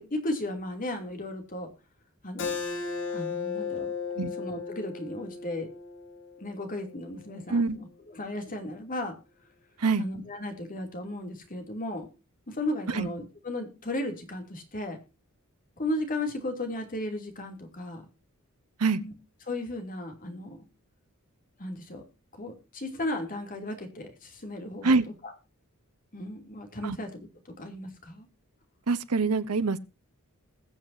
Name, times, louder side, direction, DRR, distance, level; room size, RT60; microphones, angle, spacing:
voice 1, 0.0-1.7 2.2-2.6 3.1-3.9 4.4-5.7 6.4-9.1 10.0-12.1 12.5-15.0 15.8-18.0 18.9-19.1 19.5-20.6 21.6-22.0 22.4-25.3 26.1-27.1 27.4-28.3, left 1 dB, 40° left, 2.9 m, -35 dB
Keyboard (musical), 2.4-7.6, left 5 dB, 60° left, 2.4 m, -36 dB
voice 2, 28.9-29.8, right 4 dB, 85° right, 0.9 m, -25 dB
21.0 x 7.4 x 2.7 m
head